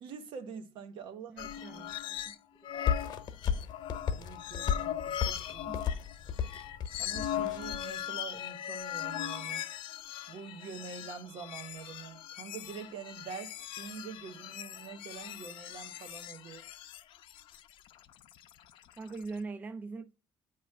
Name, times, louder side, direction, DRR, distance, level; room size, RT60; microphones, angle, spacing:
voice 1, 0.0-1.9 4.1-5.8 7.0-9.6 10.3-16.6, right 6 dB, 75° right, 0.9 m, -45 dB
sound 1, 1.4-2.4 2.6-19.4, left 11 dB, 75° left, 0.5 m, -40 dB
voice 2, 1.4-2.4 5.7-5.9 19.0-20.1, right 3 dB, 20° right, 0.4 m, -42 dB
sound 2, 2.9-7.8, left 7 dB, 55° left, 0.9 m, -34 dB
8.6 x 3.0 x 5.9 m
cardioid pair, 150°, 9 cm